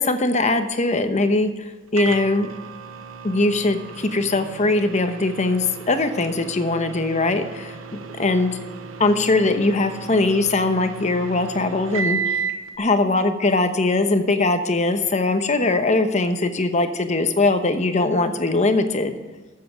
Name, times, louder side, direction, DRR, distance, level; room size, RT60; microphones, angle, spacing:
voice 1, 0.0-1.5 1.9-2.5 3.2-7.7 8.2-8.6 9.0-12.4 12.8-19.2, left 2 dB, 35° left, 8 dB, 1.0 m, -21 dB
Microwave oven, 2.0-12.7, right 5 dB, 75° right, 0.9 m, -33 dB
13.0 x 7.7 x 5.1 m, 1.3 s
head